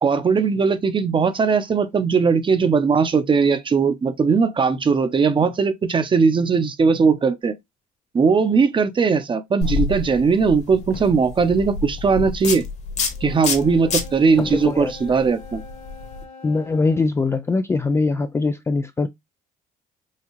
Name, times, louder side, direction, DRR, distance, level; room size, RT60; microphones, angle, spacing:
voice 1, 0.0-7.5 8.1-12.6 13.2-15.6, right 5 dB, 30° right, 0.8 m, -19 dB
sound 1, 9.6-16.2, left 4 dB, 40° left, 1.3 m, -28 dB
Wind instrument woodwind instrument, 13.1-17.1, left 3 dB, 60° left, 1.7 m, -43 dB
voice 2, 14.4-14.9 16.4-19.1, left 3 dB, 15° left, 0.3 m, -22 dB
5.6 x 2.3 x 3.0 m
cardioid pair, 110°, 17 cm